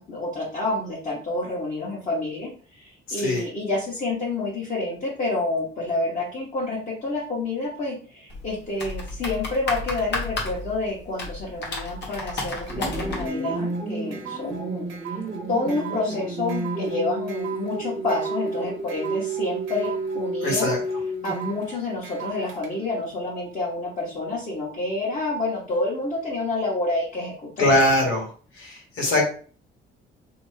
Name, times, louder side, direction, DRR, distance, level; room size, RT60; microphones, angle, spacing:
voice 1, 0.0-14.9 15.5-20.7 21.2-27.7, left 2 dB, 40° left, -6 dB, 1.1 m, -28 dB
sound 1, 8.3-13.3, left 2 dB, 60° left, 1.1 m, -32 dB
sound 2, 12.6-22.7, right 7 dB, 90° right, 0.7 m, -40 dB
sound 3, 12.7-21.7, right 2 dB, 25° right, 0.5 m, -31 dB
voice 2, 20.4-20.8 27.6-28.3 28.6-29.2, left 1 dB, 85° left, -1 dB, 1.3 m, -21 dB
2.8 x 2.2 x 3.2 m, 0.42 s
cardioid pair, 90°, 20 cm